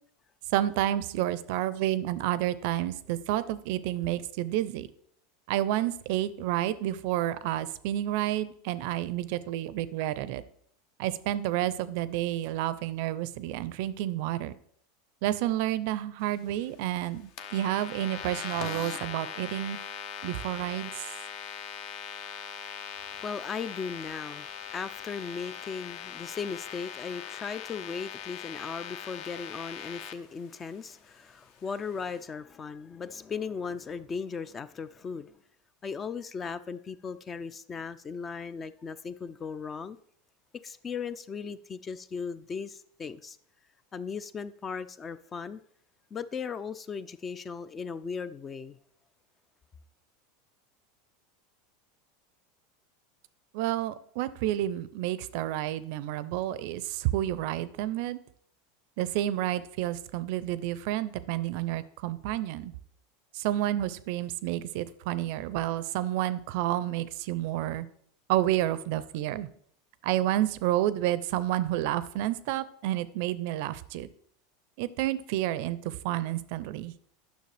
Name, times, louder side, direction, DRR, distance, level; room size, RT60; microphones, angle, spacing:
voice 1, 0.5-4.9 5.5-10.4 11.0-14.6 15.2-19.8 20.2-21.1 53.5-58.2 59.0-62.7 63.3-67.9 68.3-69.5 70.0-74.1 74.8-76.9, right 13 dB, 65° right, 0.4 m, -30 dB
sound 1, 17.4-30.1, left 8 dB, 55° left, 0.7 m, -40 dB
voice 2, 23.0-35.3 35.8-40.0 40.6-43.4 43.9-45.6 46.1-48.8, left 5 dB, 20° left, 0.3 m, -37 dB
9.2 x 6.4 x 3.3 m
supercardioid pair, 140°, 0 cm